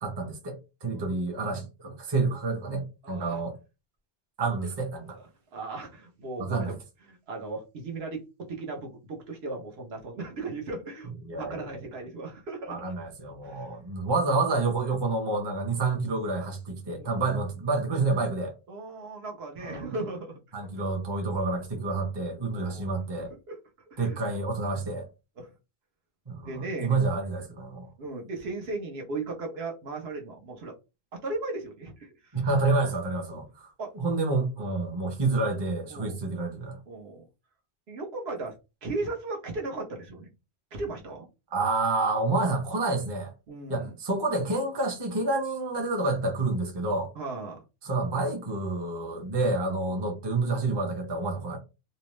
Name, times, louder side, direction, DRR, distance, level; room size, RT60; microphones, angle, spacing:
voice 1, 0.0-3.5 4.4-5.2 6.4-6.8 11.2-11.6 12.7-18.5 19.6-19.9 20.5-23.3 24.0-25.0 26.3-27.9 32.3-36.8 41.5-43.3 43.7-47.1 47.8-51.6, right 3 dB, 30° right, 0.6 m, -28 dB
voice 2, 3.0-3.4 5.1-6.8 7.1-12.9 13.4-13.7 16.9-17.4 18.7-20.4 21.8-21.9 22.5-23.6 23.9-24.2 25.4-25.5 26.4-27.0 28.0-30.7 31.1-32.4 33.8-33.9 35.9-36.2 36.9-37.2 37.9-40.3 40.7-41.3 43.5-43.9 47.1-47.6 49.8-50.1, right 3 dB, 75° right, 1.0 m, -37 dB
2.7 x 2.1 x 3.0 m
omnidirectional pair, 1.1 m